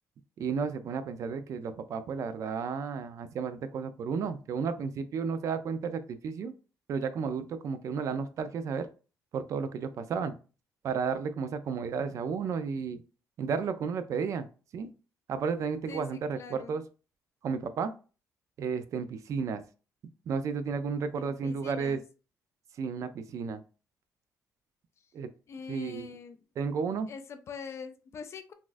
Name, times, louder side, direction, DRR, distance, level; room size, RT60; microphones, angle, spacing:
voice 1, 0.4-6.5 6.9-8.9 9.3-10.4 10.8-13.0 13.4-14.5 14.7-14.9 15.3-16.8 17.4-17.9 18.6-19.6 20.3-22.0 22.8-23.6 25.1-25.3 25.7-26.1 26.6-27.1, right 5 dB, 55° right, 10 dB, 0.4 m, -32 dB
voice 2, 15.9-16.8 21.1-22.0 25.5-26.4 27.1-28.5, left 5 dB, 45° left, 9 dB, 0.4 m, -43 dB
4.0 x 2.4 x 2.5 m, 0.35 s
cardioid pair, 125°, 6 cm